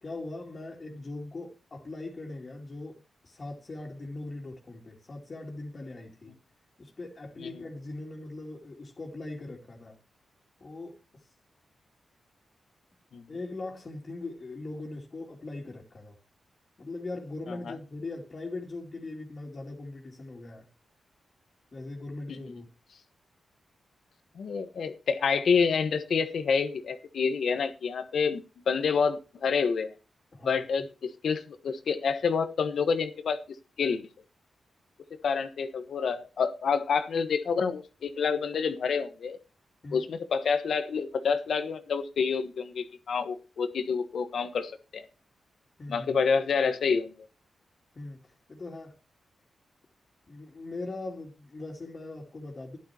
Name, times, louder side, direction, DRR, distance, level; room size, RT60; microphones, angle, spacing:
voice 1, 0.0-6.3 6.8-10.0 10.6-11.2 13.3-16.2 16.8-20.7 21.7-22.7 30.3-30.9 39.8-40.1 45.8-46.2 47.9-48.9 50.3-52.8, left 2 dB, 40° left, 2.9 m, -40 dB
voice 2, 24.4-29.9 30.4-33.4 33.8-34.0 35.2-39.4 39.9-45.0 45.9-47.1, left 5 dB, 75° left, 1.3 m, -28 dB
13.0 x 11.0 x 3.0 m
cardioid pair, 75°, 0 cm